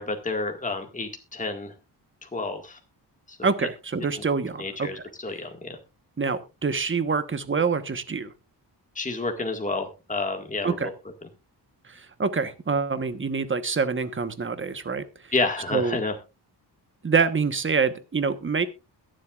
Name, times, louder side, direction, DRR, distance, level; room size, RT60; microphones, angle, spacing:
voice 1, 0.0-1.7 2.2-2.8 3.3-3.5 4.6-5.8 8.9-10.9 15.3-16.1, left 3 dB, 20° left, 4 dB, 1.8 m, -30 dB
voice 2, 3.4-5.0 6.2-8.3 10.6-10.9 11.8-15.3 15.7-16.0 17.0-18.7, right 5 dB, 30° right, 11 dB, 1.2 m, -26 dB
22.0 x 7.8 x 2.4 m, 0.27 s
wide cardioid pair, 115°, 41 cm